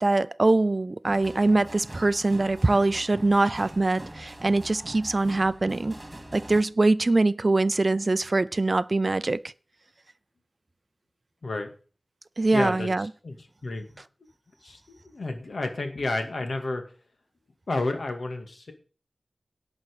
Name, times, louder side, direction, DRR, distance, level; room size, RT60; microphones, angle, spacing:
voice 1, 0.0-6.0 6.3-9.4 12.4-13.1, right 2 dB, 40° right, 0.5 m, -23 dB
sound 1, 1.0-6.6, right 1 dB, 20° right, 2.5 m, -43 dB
voice 2, 12.5-14.0 14.6-16.8 17.7-18.7, left 2 dB, 75° left, 2.3 m, -31 dB
11.5 x 6.2 x 8.5 m
wide cardioid pair, 80°, 0 cm